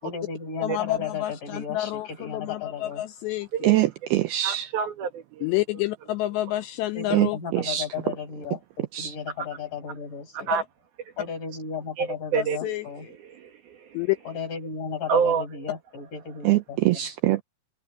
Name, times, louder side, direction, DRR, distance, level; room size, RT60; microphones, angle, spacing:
voice 1, 0.0-3.0 6.9-10.5 11.2-13.1 14.2-17.1, left 6 dB, 45° left, 6.9 m, -35 dB
voice 2, 0.6-3.8 5.4-7.4 10.5-10.6 12.4-12.9 13.9-14.2, left 16 dB, 80° left, 2.6 m, -29 dB
voice 3, 3.6-4.7 7.1-7.8 8.9-9.1 16.5-17.4, right 16 dB, 85° right, 2.3 m, -23 dB
voice 4, 4.4-5.5 10.3-10.6 12.0-12.1 12.3-12.7 13.2-14.1 15.1-15.4, right 7 dB, 60° right, 3.3 m, -27 dB
omnidirectional pair, 5.4 m